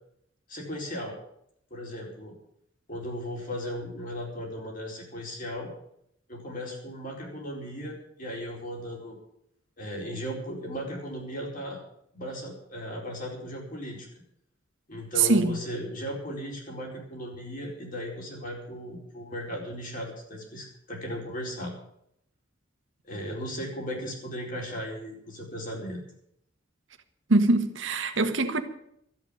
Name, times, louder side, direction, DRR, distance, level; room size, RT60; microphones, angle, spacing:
voice 1, 0.5-1.2 1.7-2.3 2.9-5.7 6.3-9.2 9.8-11.8 12.1-14.1 14.9-21.7 23.1-26.0, equal, 45° left, 4.5 m, -36 dB
voice 2, 15.2-15.5 27.3-28.6, right 2 dB, 70° right, 1.4 m, -23 dB
13.5 x 8.3 x 9.9 m
head